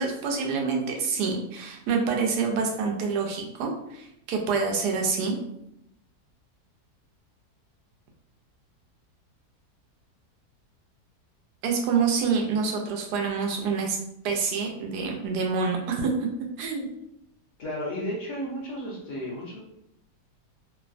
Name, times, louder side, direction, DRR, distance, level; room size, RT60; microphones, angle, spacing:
voice 1, 0.0-5.4 11.6-14.0 14.2-16.1 16.6-16.9, right 5 dB, 90° right, 1 dB, 1.2 m, -27 dB
voice 2, 17.6-19.6, equal, 65° left, -3 dB, 0.8 m, -33 dB
3.0 x 2.0 x 2.5 m, 0.80 s
omnidirectional pair, 1.7 m